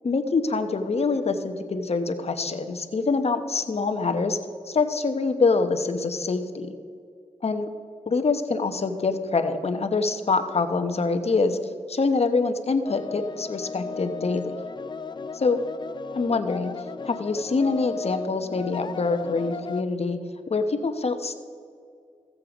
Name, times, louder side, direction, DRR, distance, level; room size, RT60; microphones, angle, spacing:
voice 1, 0.0-4.4 4.7-6.7 7.4-7.7 8.1-11.6 11.9-14.6 15.3-15.6 16.1-16.7 17.0-20.2 20.5-21.3, left 4 dB, 50° left, 8 dB, 1.0 m, -25 dB
sound 1, 12.8-19.8, left 5 dB, 35° left, 0.4 m, -36 dB
14.5 x 7.6 x 5.0 m, 2.3 s
cardioid pair, 60°, 13 cm